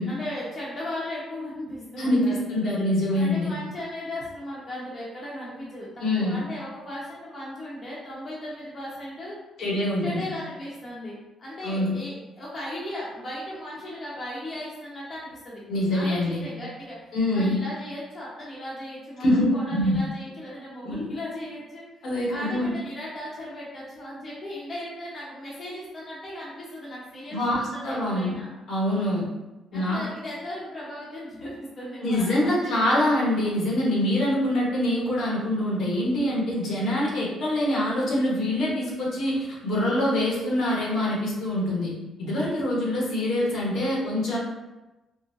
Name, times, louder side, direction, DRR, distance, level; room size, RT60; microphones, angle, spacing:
voice 1, 0.1-2.5 3.1-5.9 6.2-9.4 10.0-15.6 15.9-28.5 29.7-33.1 36.1-36.4, left 1 dB, 35° left, -7 dB, 0.9 m, -37 dB
voice 2, 2.0-3.6 6.0-6.4 9.6-10.3 11.6-11.9 15.7-16.4 17.1-17.6 19.2-20.0 20.8-21.0 22.0-22.7 27.3-28.4 28.7-29.3 29.7-30.0 32.0-41.9 42.2-44.4, left 1 dB, 70° left, -5 dB, 1.1 m, -25 dB
3.8 x 2.1 x 2.6 m, 1.1 s
cardioid pair, 110°, 0 cm